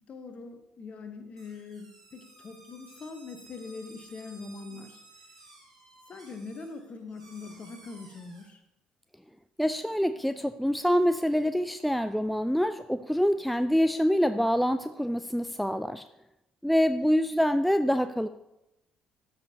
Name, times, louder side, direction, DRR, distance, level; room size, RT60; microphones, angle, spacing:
voice 1, 0.1-5.0 6.1-8.6, left 4 dB, 40° left, 7 dB, 1.0 m, -42 dB
sound 1, 1.3-8.4, right 2 dB, 85° right, 1.2 m, -54 dB
voice 2, 9.6-16.0 16.6-18.3, equal, ahead, 11 dB, 0.3 m, -26 dB
13.5 x 5.1 x 2.8 m, 0.90 s
figure-of-eight pair, 45°, 3 cm